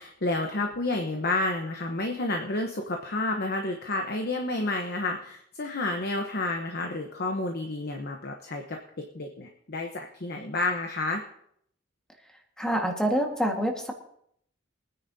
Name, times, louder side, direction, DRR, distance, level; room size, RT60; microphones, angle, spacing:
voice 1, 0.0-11.2, left 2 dB, 55° left, 3 dB, 1.0 m, -30 dB
voice 2, 12.6-13.9, equal, 5° left, 2 dB, 1.6 m, -26 dB
23.5 x 9.9 x 2.8 m, 0.71 s
head